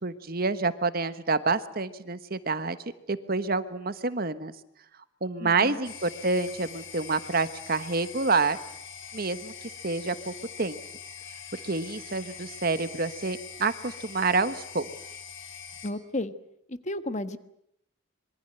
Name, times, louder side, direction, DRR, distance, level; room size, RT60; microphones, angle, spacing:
voice 1, 0.0-2.8 3.1-4.5 5.2-8.6 9.1-9.5 9.8-10.8 11.6-14.9, right 3 dB, 50° right, 12 dB, 1.3 m, -28 dB
voice 2, 5.4-5.8 15.8-16.3 16.7-17.4, left 1 dB, 35° left, 11 dB, 1.4 m, -33 dB
sound 1, 5.8-15.9, left 7 dB, 65° left, 3.0 m, -43 dB
26.5 x 23.0 x 8.0 m, 0.75 s
head